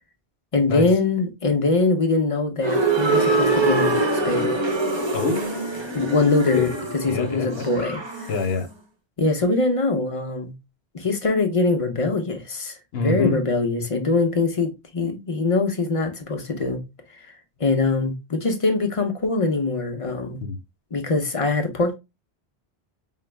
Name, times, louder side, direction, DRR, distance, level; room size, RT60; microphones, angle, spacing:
voice 1, 0.5-4.6 5.9-6.7 7.0-8.3 9.2-10.5 10.9-16.8 17.6-20.4 20.9-21.9, left 3 dB, 35° left, 0.8 m, -23 dB
sound 1, 2.6-8.5, right 2 dB, 30° right, 0.6 m, -24 dB
voice 2, 5.1-6.8 7.1-7.6 8.3-8.7 12.9-13.4 20.4-20.6, left 3 dB, 75° left, 1.0 m, -27 dB
4.9 x 2.0 x 3.2 m
omnidirectional pair, 1.1 m